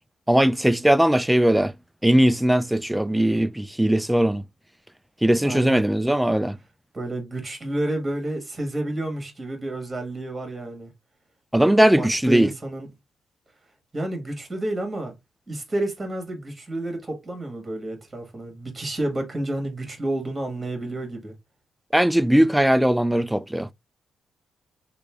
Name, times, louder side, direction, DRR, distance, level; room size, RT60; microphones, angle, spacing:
voice 1, 0.3-1.7 2.0-4.4 5.2-6.6 11.5-12.5 21.9-23.7, right 1 dB, 5° right, 0.3 m, -19 dB
voice 2, 5.4-5.8 6.9-10.9 12.0-12.9 13.9-15.1 15.5-21.3, right 1 dB, 20° right, 1.4 m, -30 dB
3.1 x 2.5 x 3.5 m
cardioid pair, 100°, 0 cm